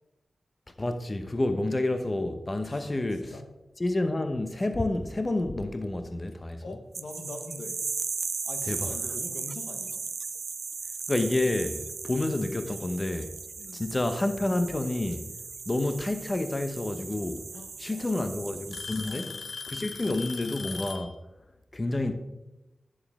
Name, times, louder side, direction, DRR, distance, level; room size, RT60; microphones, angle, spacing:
voice 1, 0.8-3.4 3.8-6.8 8.7-8.9 11.1-13.3 13.7-15.3 15.7-17.5 17.8-19.3 19.7-21.2 21.7-22.1, left 2 dB, 35° left, 0.8 m, -29 dB
voice 2, 2.6-3.0 3.3-3.5 6.6-7.8 8.4-10.0 13.6-13.8 17.5-18.5 19.0-19.4, left 3 dB, 80° left, 1.1 m, -43 dB
sound 1, 6.9-19.3, right 5 dB, 70° right, 0.3 m, -37 dB
Alarm / Tick-tock, 7.2-7.4 8.3-8.4 9.2-9.3 11.0-11.1 12.3-12.4 13.6-14.1 15.8-15.9 17.2-17.3 17.6-18.0 18.7-21.1, left 4 dB, 65° left, 0.4 m, -39 dB
10.5 x 7.4 x 3.6 m
cardioid pair, 40°, 0 cm